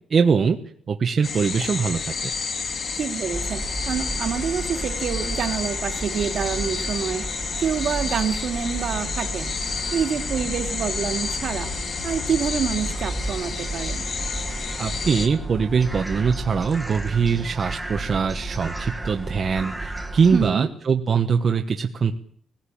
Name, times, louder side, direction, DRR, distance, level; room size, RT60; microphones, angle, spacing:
voice 1, 0.1-0.6 0.9-2.3 14.8-22.1, right 6 dB, 40° right, 5 dB, 1.2 m, -22 dB
sound 1, 1.2-15.3, left 5 dB, 40° left, 2.9 m, -30 dB
voice 2, 3.0-7.2 7.6-9.5 9.9-11.7 12.0-14.0 20.3-20.7, right 7 dB, 55° right, 7 dB, 2.3 m, -27 dB
sound 2, 3.3-20.5, right 2 dB, 5° right, 1.5 m, -33 dB
21.0 x 16.0 x 8.8 m, 0.62 s
wide cardioid pair, 165°, 0 cm